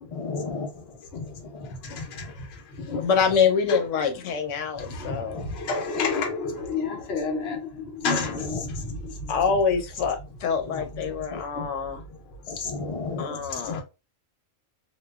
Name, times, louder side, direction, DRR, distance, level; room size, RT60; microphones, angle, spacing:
voice 1, 0.1-0.9 1.1-1.7 2.2-2.3 5.3-5.4 8.2-8.6 10.7-10.8 11.3-11.4 12.5-13.4, left 4 dB, 35° left, 0.7 m, -34 dB
voice 2, 1.6-3.1 4.8-9.3 11.5-11.7 12.5-12.7 13.0-13.4 13.6-13.8, left 4 dB, 60° left, 0.9 m, -31 dB
voice 3, 3.0-5.5 9.3-12.0 13.2-13.8, left 6 dB, 85° left, 1.0 m, -25 dB
2.9 x 2.2 x 2.3 m
omnidirectional pair, 1.3 m